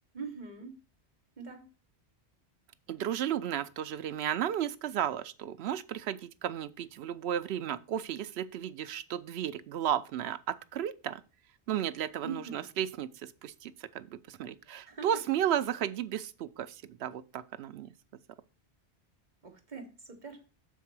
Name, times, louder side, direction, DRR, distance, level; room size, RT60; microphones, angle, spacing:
voice 1, 0.1-0.8 1.4-1.7 12.2-12.6 14.9-15.1 19.4-20.4, right 5 dB, 45° right, 1.3 m, -42 dB
voice 2, 2.9-11.2 11.7-17.9, right 10 dB, 75° right, 0.8 m, -34 dB
6.5 x 4.6 x 6.0 m
omnidirectional pair, 1.1 m